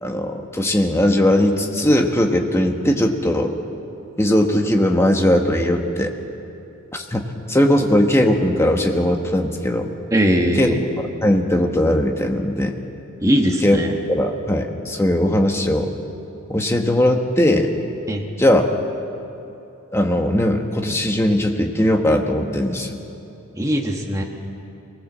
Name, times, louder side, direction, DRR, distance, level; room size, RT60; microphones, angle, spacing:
voice 1, 0.0-3.5 4.2-6.1 6.9-9.9 10.5-10.7 11.2-12.7 13.6-13.8 14.1-15.9 16.5-17.7 18.4-18.7 19.9-23.0, left 1 dB, 10° left, 3 dB, 1.4 m, -19 dB
voice 2, 10.1-10.8 13.2-13.9 18.1-18.2 23.6-24.2, equal, 15° right, 0 dB, 1.5 m, -20 dB
24.0 x 19.0 x 7.5 m, 2.8 s
head